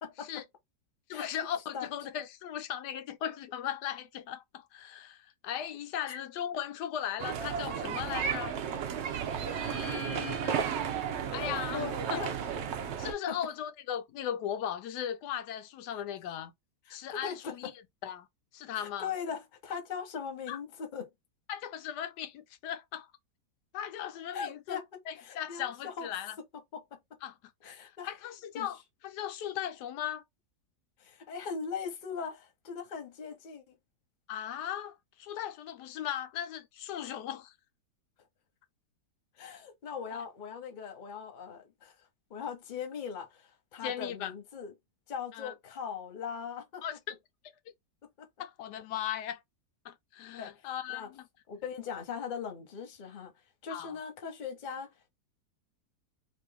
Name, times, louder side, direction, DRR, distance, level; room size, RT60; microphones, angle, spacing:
voice 1, 0.0-0.4 1.1-1.3 1.7-1.9 6.1-6.2 11.7-12.3 13.3-13.4 16.9-17.7 18.7-21.1 24.3-26.1 26.7-27.2 27.6-28.1 28.5-28.7 31.0-33.8 39.3-44.7 45.1-46.8 48.2-48.3 50.4-51.1 51.5-53.3 53.6-55.1, left 6 dB, 40° left, 0.7 m, -40 dB
voice 2, 1.1-8.6 9.4-10.6 11.3-12.2 13.0-16.5 16.9-17.7 18.0-18.3 18.5-19.1 20.5-20.6 21.5-23.1 23.7-24.8 25.1-26.4 27.2-27.3 27.6-28.8 29.0-30.2 34.3-37.5 40.1-40.2 43.8-44.3 45.3-45.5 46.8-47.1 48.4-49.4 49.8-51.3 53.7-54.0, left 10 dB, 80° left, 1.2 m, -38 dB
sound 1, 7.2-13.1, right 7 dB, 70° right, 0.6 m, -33 dB
3.0 x 2.5 x 3.4 m
omnidirectional pair, 1.8 m